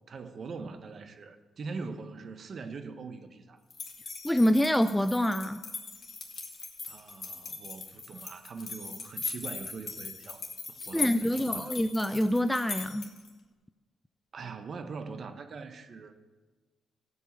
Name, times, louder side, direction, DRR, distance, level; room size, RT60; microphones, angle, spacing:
voice 1, 0.1-3.6 6.9-11.8 14.3-16.1, right 4 dB, 50° right, 8 dB, 1.1 m, -42 dB
sound 1, 3.7-13.3, left 4 dB, 45° left, 3.0 m, -39 dB
voice 2, 4.2-5.6 10.9-13.1, equal, 5° left, 11 dB, 0.5 m, -26 dB
15.5 x 5.4 x 8.3 m, 1.3 s
supercardioid pair, 65°, 0 cm